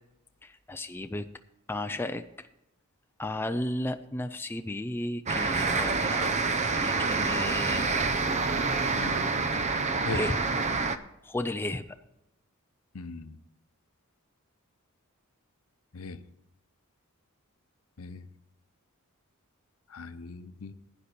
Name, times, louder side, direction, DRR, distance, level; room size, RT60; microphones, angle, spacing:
voice 1, 0.4-1.3 1.7-2.5 3.2-7.9 10.1-10.4 11.2-11.8, left 1 dB, 10° left, 8 dB, 0.4 m, -34 dB
sound 1, 5.3-11.0, right 4 dB, 30° right, 0.6 m, -27 dB
voice 2, 8.9-9.3 10.1-10.2 12.9-13.4 15.9-16.2 18.0-18.3 19.9-20.7, left 3 dB, 70° left, 12 dB, 0.8 m, -38 dB
12.0 x 9.9 x 4.3 m, 0.88 s
head